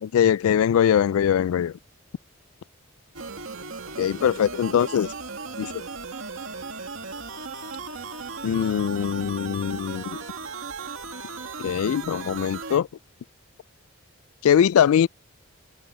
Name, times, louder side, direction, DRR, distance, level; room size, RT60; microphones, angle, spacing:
voice 1, 0.0-1.7 4.0-5.1 5.6-5.8 8.4-10.2 11.6-12.9 14.4-15.1, left 9 dB, 80° left, 0.3 m, -22 dB
sound 1, 3.1-12.8, right 4 dB, 75° right, 2.4 m, -36 dB
head